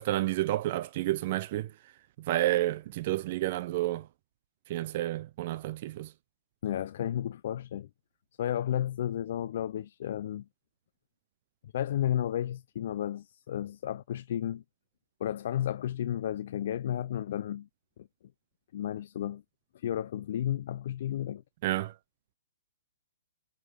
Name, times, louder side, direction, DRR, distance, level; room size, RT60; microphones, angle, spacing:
voice 1, 0.0-1.7 2.2-4.1 4.7-6.1 21.6-21.9, right 15 dB, 45° right, 0.5 m, -30 dB
voice 2, 6.6-7.9 8.4-10.5 11.6-14.6 15.2-17.7 18.0-18.1 18.7-19.4 19.7-21.4, left 11 dB, 55° left, 0.4 m, -32 dB
8.1 x 3.7 x 5.0 m
hypercardioid pair, 150°, 0 cm